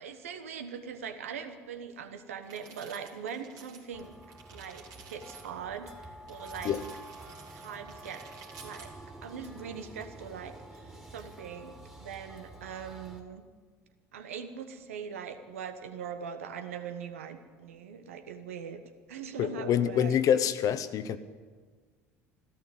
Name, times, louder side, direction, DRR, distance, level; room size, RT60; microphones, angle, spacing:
voice 1, 0.0-4.2 4.5-6.8 7.5-8.2 8.6-8.9 9.2-11.7 12.0-13.5 14.1-18.8 19.1-20.1, right 7 dB, 85° right, 1.2 m, -41 dB
sound 1, 2.4-5.5 6.3-8.9, right 5 dB, 60° right, 3.0 m, -52 dB
sound 2, 3.9-13.2, right 2 dB, 10° right, 2.4 m, -48 dB
voice 2, 19.4-21.2, left 9 dB, 55° left, 0.9 m, -26 dB
14.0 x 13.0 x 7.8 m
hypercardioid pair, 65°, 7 cm